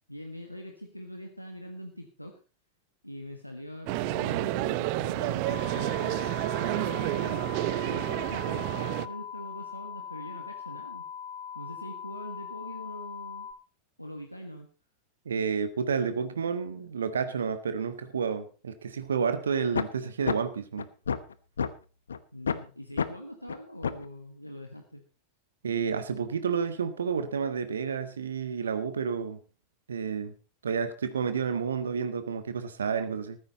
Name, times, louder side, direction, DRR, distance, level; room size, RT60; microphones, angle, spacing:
voice 1, 0.1-2.4 3.0-11.1 11.5-13.5 14.0-14.7 22.3-25.0, equal, 90° left, 4 dB, 1.6 m, -43 dB
sound 1, 3.9-9.1, right 17 dB, 45° right, 0.8 m, -30 dB
sound 2, 5.4-13.5, left 8 dB, 20° left, 4.2 m, -41 dB
voice 2, 15.2-20.9 25.6-29.4 29.9-30.3 30.6-33.4, right 6 dB, 70° right, 11 dB, 1.4 m, -30 dB
sound 3, 19.7-19.8 20.3-20.4 20.8-21.7 22.1-22.2 22.5-22.6 23.0-23.1 23.5-23.6 23.8-24.0, left 6 dB, 70° left, 1.0 m, -28 dB
14.5 x 13.5 x 4.2 m, 0.34 s
figure-of-eight pair, 90°, 0 cm